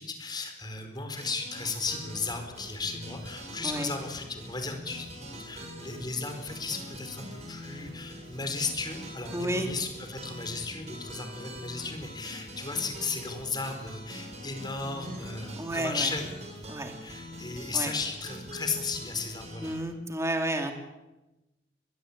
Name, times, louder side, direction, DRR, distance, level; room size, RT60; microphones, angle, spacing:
voice 1, 0.0-16.3 17.0-19.7, left 4 dB, 25° left, 6 dB, 4.6 m, -35 dB
sound 1, 1.2-19.8, equal, 40° right, 7.1 m, -44 dB
voice 2, 9.3-9.7 15.6-16.1 16.7-16.9 17.7-17.9 19.6-20.7, right 1 dB, 15° right, 4 dB, 3.2 m, -31 dB
24.5 x 21.0 x 8.8 m, 1.0 s
head